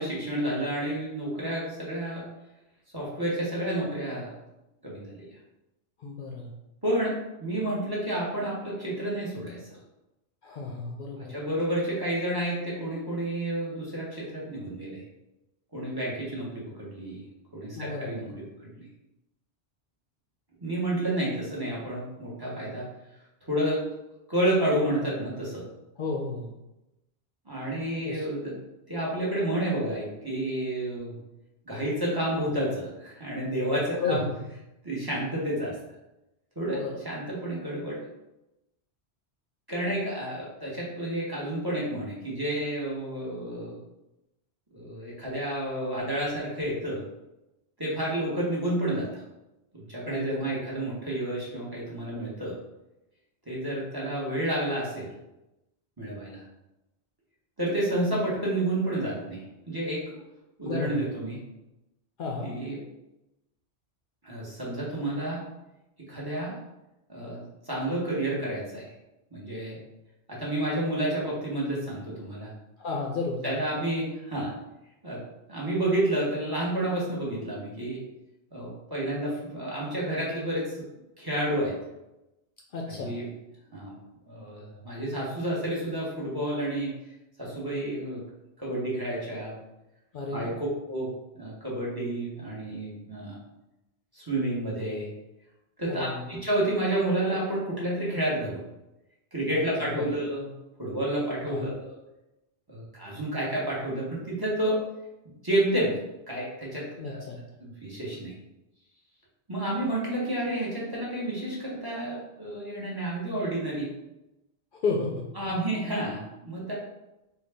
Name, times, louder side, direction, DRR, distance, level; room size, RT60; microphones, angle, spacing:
voice 1, 0.0-2.3 2.9-4.3 4.8-5.2 6.8-9.6 11.2-15.0 15.7-17.2 17.5-18.9 20.6-22.9 23.4-23.9 24.3-25.6 27.5-28.6 28.9-31.2 31.6-34.2 34.8-35.8 36.6-38.0 39.7-43.8 44.7-47.0 47.8-49.2 49.7-52.6 53.5-55.1 56.0-56.4 57.6-60.0 60.6-61.4 62.4-62.8 64.2-65.4 66.0-66.6 67.1-68.9 69.3-69.8 70.3-72.5 73.4-74.5 75.0-75.2 75.5-78.0 78.5-80.9 81.2-81.7 82.9-83.3 83.7-83.9 84.3-86.9 87.4-88.2 88.6-89.5 90.3-93.4 94.1-95.1 95.8-98.6 99.3-100.5 100.8-101.9 102.7-104.8 105.2-106.0 106.3-107.2 107.6-108.3 109.5-113.9 115.3-116.7, right 1 dB, 25° right, -5 dB, 0.9 m, -30 dB
voice 2, 6.0-6.5 10.4-11.4 17.8-18.3 26.0-26.5 28.0-28.2 34.0-34.3 36.7-37.0 50.1-50.4 60.7-61.0 62.2-62.5 72.8-73.5 82.7-83.2 90.1-90.5 95.9-96.3 100.0-100.1 101.5-101.7 107.0-107.4 114.7-115.3, left 3 dB, 60° left, -1 dB, 0.6 m, -32 dB
3.9 x 2.3 x 3.3 m, 0.93 s
omnidirectional pair, 1.1 m